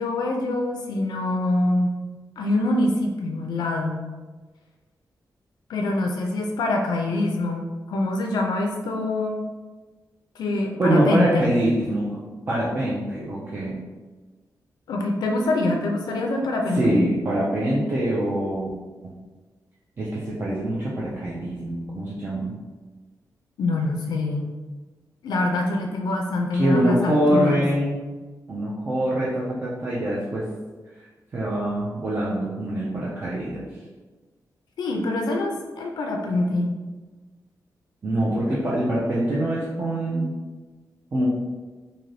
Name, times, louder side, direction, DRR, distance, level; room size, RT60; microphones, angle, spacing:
voice 1, 0.0-1.9 2.4-4.0 5.7-9.4 10.4-11.5 14.9-17.1 23.6-24.5 25.2-27.6 34.8-36.8, left 2 dB, 85° left, 1 dB, 0.3 m, -25 dB
voice 2, 10.8-12.2 12.5-13.8 16.7-18.7 19.0-19.1 20.0-22.5 26.5-28.0 28.5-30.5 30.9-31.1 31.3-33.6 38.0-40.3 41.1-41.3, right 1 dB, 30° right, -6 dB, 0.4 m, -24 dB
2.6 x 2.6 x 3.2 m, 1.3 s
wide cardioid pair, 175°, 7 cm